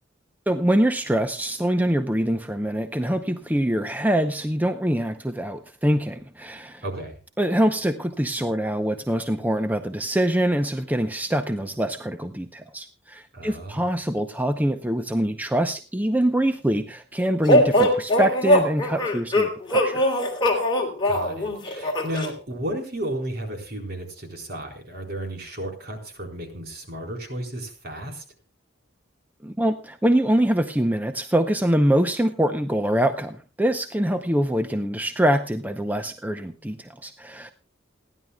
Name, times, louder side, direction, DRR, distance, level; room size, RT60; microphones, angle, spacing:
voice 1, 0.5-6.8 7.4-20.0 29.4-37.5, right 1 dB, 10° right, 7 dB, 0.7 m, -24 dB
voice 2, 6.8-7.1 13.3-13.9 21.0-28.2, right 1 dB, 55° right, 3 dB, 4.2 m, -33 dB
sound 1, 17.5-22.3, left 1 dB, 25° left, 3.1 m, -21 dB
28.5 x 11.0 x 2.3 m, 0.33 s
head